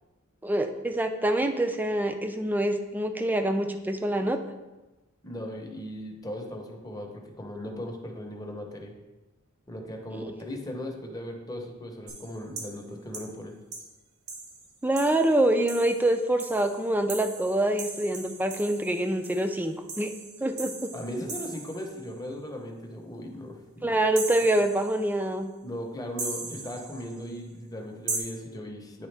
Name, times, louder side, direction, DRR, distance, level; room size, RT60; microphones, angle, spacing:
voice 1, 0.4-4.4 10.1-10.3 14.8-20.1 20.4-20.9 23.8-25.5, right 1 dB, 10° right, 7 dB, 0.4 m, -26 dB
voice 2, 5.2-8.9 9.7-13.5 20.9-23.9 25.6-29.1, equal, 15° left, 1 dB, 0.8 m, -38 dB
sound 1, 12.1-12.8 13.1-13.3 13.7-13.9 14.3-22.0 24.2-25.2 26.2-27.2 28.1-28.2, right 3 dB, 70° right, 1.1 m, -39 dB
9.5 x 3.5 x 3.3 m, 1.1 s
head